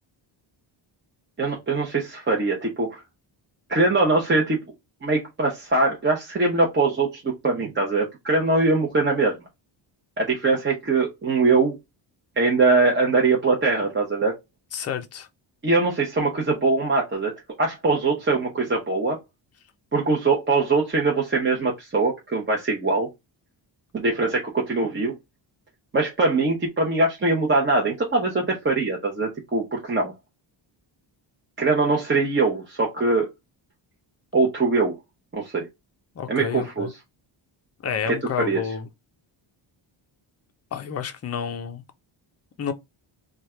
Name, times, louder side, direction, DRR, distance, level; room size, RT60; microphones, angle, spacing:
voice 1, 1.4-3.0 3.7-4.6 5.0-9.4 10.2-11.8 12.4-14.4 15.6-17.3 17.6-19.2 19.9-23.1 23.9-25.1 25.9-30.1 31.6-33.3 34.3-35.0 35.3-35.6 36.3-36.9 38.1-38.6, right 3 dB, 25° right, 0.8 m, -22 dB
voice 2, 14.7-15.3 36.2-36.9 37.8-38.9 40.7-41.8 42.6-42.7, left 7 dB, 30° left, 0.5 m, -30 dB
3.1 x 2.4 x 4.3 m
wide cardioid pair, 155°, 48 cm